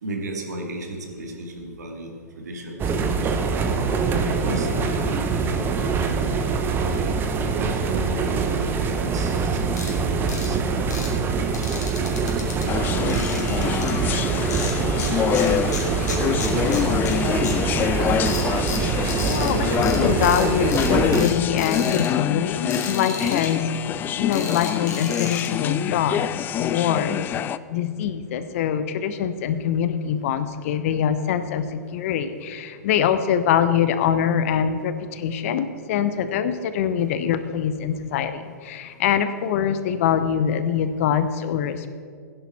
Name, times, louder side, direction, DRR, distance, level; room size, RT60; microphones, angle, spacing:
voice 1, 0.0-3.4 4.2-6.6 7.4-11.9 12.9-16.5, right 1 dB, 70° right, 2 dB, 2.2 m, -36 dB
sound 1, 2.8-21.3, right 5 dB, 25° right, 1.1 m, -24 dB
sound 2, 9.8-9.9 10.3-10.5 10.9-11.1 11.5-12.6 13.1-13.9 14.5-15.1 15.3-17.1 17.4-17.5 18.3-19.5 19.8-20.0 20.2-20.4 20.7-21.3 21.6-22.1 22.7-23.5 24.3-25.5, left 4 dB, 75° left, 3.2 m, -34 dB
sound 3, 12.7-27.6, left 10 dB, 20° left, 0.3 m, -26 dB
voice 2, 19.3-41.9, left 8 dB, 50° left, 11 dB, 0.9 m, -24 dB
16.0 x 10.5 x 4.3 m, 2.1 s
figure-of-eight pair, 110°, 9 cm